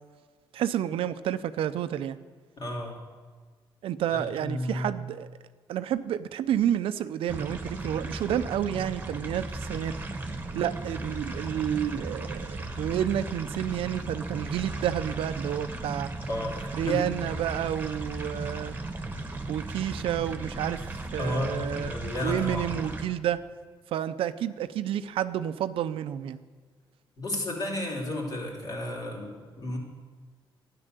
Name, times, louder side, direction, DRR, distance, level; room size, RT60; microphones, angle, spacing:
voice 1, 0.5-2.2 3.8-5.3 5.7-9.9 10.5-16.1 16.7-18.8 19.5-20.8 21.1-21.9 22.2-23.4 23.9-26.4, right 10 dB, 85° right, 12 dB, 0.6 m, -30 dB
voice 2, 2.6-3.0 4.1-5.0 16.3-17.1 21.2-22.7 27.2-29.8, left 1 dB, 45° left, -2 dB, 3.5 m, -33 dB
sound 1, 7.3-23.1, right 2 dB, 20° right, 1.4 m, -36 dB
12.5 x 10.0 x 6.8 m, 1.5 s
cardioid pair, 105°, 9 cm